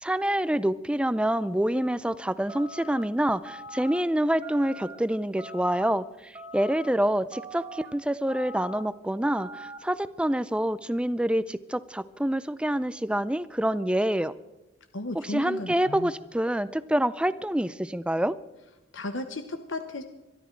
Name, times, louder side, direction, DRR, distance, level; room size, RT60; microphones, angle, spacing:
voice 1, 0.0-14.3 15.2-18.4, right 1 dB, 5° right, 16 dB, 0.4 m, -27 dB
sound 1, 2.5-3.0 3.4-4.0 4.4-5.0 5.4-5.9 6.3-6.9 7.3-7.8 8.3-8.8 9.2-9.8, right 1 dB, 20° right, 1.1 m, -42 dB
voice 2, 14.9-16.1 18.9-20.0, left 2 dB, 90° left, 8 dB, 1.0 m, -34 dB
22.5 x 12.5 x 4.6 m, 1.0 s
head